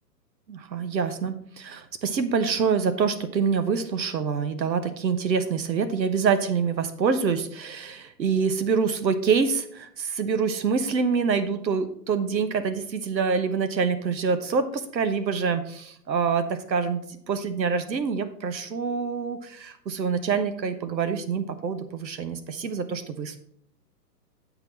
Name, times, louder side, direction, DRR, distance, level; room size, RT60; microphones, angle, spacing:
voice 1, 0.5-23.4, right 5 dB, 90° right, 10 dB, 1.2 m, -26 dB
8.0 x 6.0 x 4.5 m, 0.67 s
hypercardioid pair, 145°, 50 cm